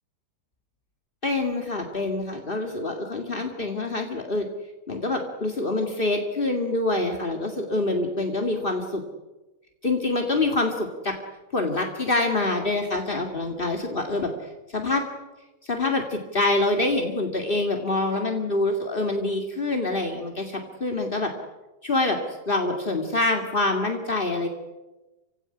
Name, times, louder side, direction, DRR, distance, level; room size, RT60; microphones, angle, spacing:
voice 1, 1.2-4.4 4.9-9.0 9.8-11.2 11.5-14.3 14.7-15.0 15.6-21.3 21.8-24.5, left 2 dB, 25° left, 3 dB, 1.1 m, -26 dB
29.5 x 17.0 x 9.8 m, 1.1 s
omnidirectional pair, 4.4 m